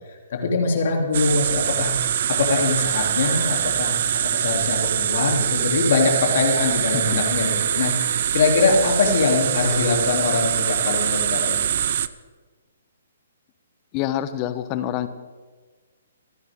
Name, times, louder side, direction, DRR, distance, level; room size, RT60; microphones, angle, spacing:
voice 1, 0.3-2.0 2.4-4.0 4.3-11.6, left 4 dB, 55° left, 1 dB, 3.0 m, -22 dB
sound 1, 1.1-12.1, right 9 dB, 55° right, 0.5 m, -23 dB
voice 2, 13.9-15.1, left 12 dB, 30° left, 11 dB, 1.0 m, -26 dB
25.5 x 10.5 x 3.7 m, 1.4 s
figure-of-eight pair, 130°, 0 cm